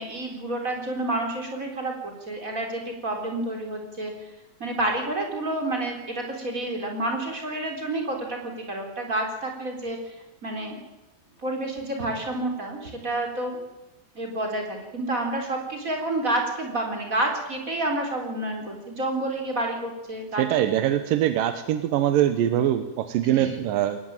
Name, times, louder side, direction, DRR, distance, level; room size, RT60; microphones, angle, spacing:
voice 1, 0.0-4.1 4.6-10.1 10.4-10.8 11.4-13.6 14.1-20.9 23.3-23.6, right 1 dB, 20° right, 2 dB, 3.9 m, -29 dB
voice 2, 20.4-24.0, right 11 dB, 70° right, 10 dB, 2.5 m, -23 dB
22.0 x 19.5 x 9.0 m, 0.99 s
omnidirectional pair, 4.5 m